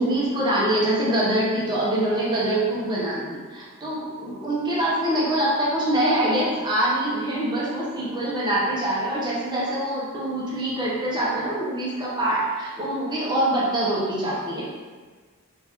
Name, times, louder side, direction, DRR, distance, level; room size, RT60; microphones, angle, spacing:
voice 1, 0.0-14.6, right 1 dB, 20° right, -6 dB, 0.8 m, -24 dB
3.0 x 2.5 x 3.4 m, 1.4 s
head